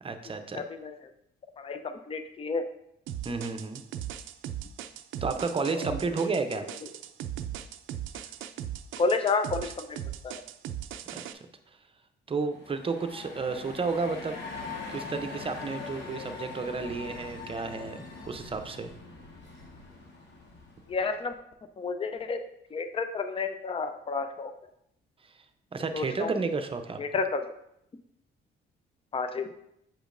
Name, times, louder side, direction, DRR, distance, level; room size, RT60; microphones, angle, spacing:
voice 1, 0.0-0.6 3.2-3.8 5.2-6.7 11.1-11.2 12.3-14.4 14.9-18.9 25.7-27.0, right 4 dB, 25° right, 7 dB, 0.6 m, -32 dB
voice 2, 0.5-0.9 1.6-1.8 2.1-2.6 9.0-10.0 10.2-10.3 20.9-21.3 21.8-22.4 22.7-24.5 25.9-26.3 27.0-27.5 29.1-29.7, left 4 dB, 30° left, 9 dB, 0.5 m, -30 dB
sound 1, 3.1-11.3, right 11 dB, 80° right, 0.4 m, -38 dB
sound 2, 12.4-21.2, left 4 dB, 60° left, 1.4 m, -42 dB
7.4 x 5.0 x 2.5 m, 0.76 s
cardioid pair, 90°, 20 cm